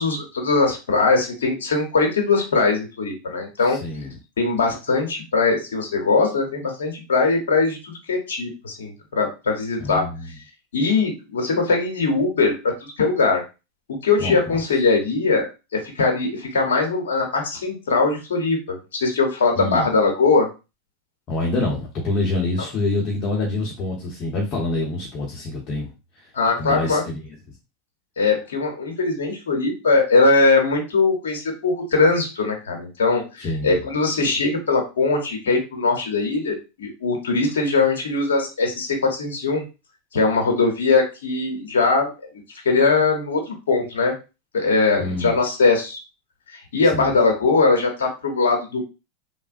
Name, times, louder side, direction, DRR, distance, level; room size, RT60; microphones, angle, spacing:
voice 1, 0.0-3.8 4.4-10.1 10.7-13.4 13.9-15.5 15.7-20.5 26.3-27.0 28.2-39.6 40.1-42.1 42.6-44.1 44.5-46.0 46.5-48.8, left 3 dB, 85° left, 3 dB, 0.9 m, -21 dB
voice 2, 3.6-4.2 9.8-10.3 14.2-14.6 19.6-19.9 21.3-25.9 26.6-27.2 33.4-33.8 45.0-45.3 46.9-47.1, left 2 dB, 45° left, -2 dB, 0.9 m, -26 dB
3.4 x 2.1 x 2.5 m, 0.28 s
hypercardioid pair, 100°, 0 cm